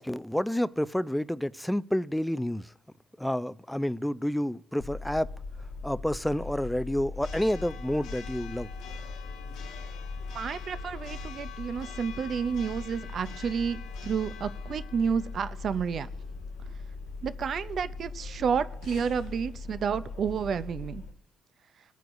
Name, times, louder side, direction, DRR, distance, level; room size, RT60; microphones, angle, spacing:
voice 1, 0.0-2.7 3.2-5.3 5.8-8.7, left 1 dB, 5° left, 0.4 m, -29 dB
Church bell, 4.8-21.1, left 4 dB, 75° left, 1.5 m, -40 dB
voice 2, 10.3-16.1 17.2-21.0, right 6 dB, 55° right, 0.6 m, -30 dB
22.5 x 9.2 x 2.6 m
hypercardioid pair, 55°, 0 cm